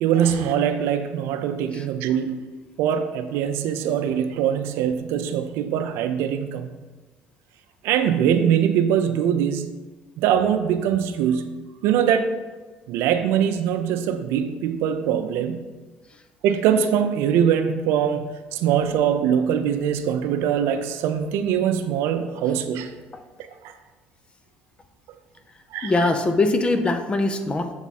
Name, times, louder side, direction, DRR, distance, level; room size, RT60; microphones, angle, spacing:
voice 1, 0.0-2.4 2.8-6.7 7.8-9.7 10.2-11.4 11.8-12.3 12.9-15.6 16.4-22.9 23.6-23.7 25.7-26.1, right 9 dB, 75° right, 8 dB, 0.5 m, -22 dB
voice 2, 25.8-27.7, left 2 dB, 25° left, 8 dB, 0.6 m, -22 dB
7.1 x 3.5 x 4.2 m, 1.3 s
supercardioid pair, 95°, 4 cm